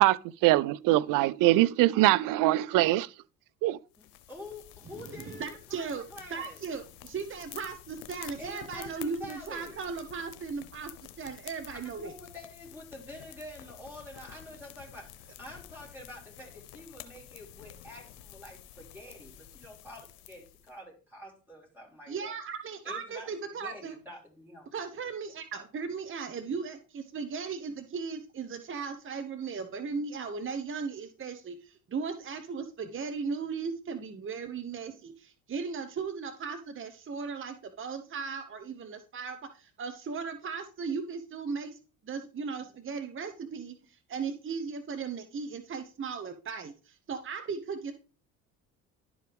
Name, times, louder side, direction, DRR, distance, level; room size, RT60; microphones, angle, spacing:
voice 1, 0.0-3.1 3.6-3.8, right 17 dB, 60° right, 0.5 m, -23 dB
sound 1, 3.9-20.7, left 12 dB, 75° left, 0.9 m, -50 dB
voice 2, 4.0-6.6 8.4-9.8 11.7-22.3 22.8-23.3 23.6-24.7, left 1 dB, 5° right, 4.1 m, -47 dB
voice 3, 5.3-6.0 6.3-10.9 11.2-12.1 22.1-23.9 24.7-41.8 42.0-47.9, right 5 dB, 30° right, 1.0 m, -37 dB
11.5 x 4.7 x 3.5 m
hypercardioid pair, 70°, 39 cm